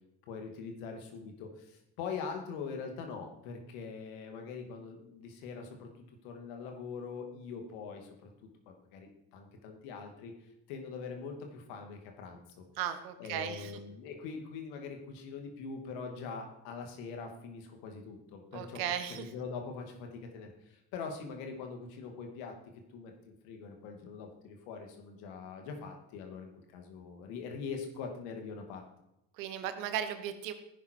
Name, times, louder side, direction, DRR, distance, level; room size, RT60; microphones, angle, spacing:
voice 1, 0.3-5.9 6.2-8.3 8.7-10.3 10.7-12.6 13.2-18.8 19.1-22.5 22.9-28.8, left 5 dB, 75° left, 4 dB, 2.7 m, -43 dB
voice 2, 12.7-13.8 18.5-19.3 29.3-30.5, right 10 dB, 85° right, 9 dB, 1.5 m, -36 dB
15.0 x 10.5 x 4.7 m, 0.87 s
hypercardioid pair, 60°, 50 cm